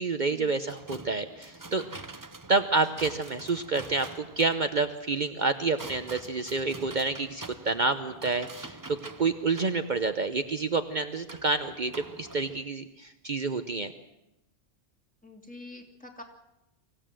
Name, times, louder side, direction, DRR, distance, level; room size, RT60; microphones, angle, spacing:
voice 1, 0.0-1.8 2.5-13.9, right 3 dB, 45° right, 9 dB, 1.0 m, -28 dB
sound 1, 0.7-12.6, right 3 dB, 20° right, 0.7 m, -46 dB
voice 2, 15.2-16.2, left 2 dB, 5° left, 2 dB, 2.8 m, -46 dB
25.0 x 16.0 x 7.6 m, 0.92 s
omnidirectional pair, 1.2 m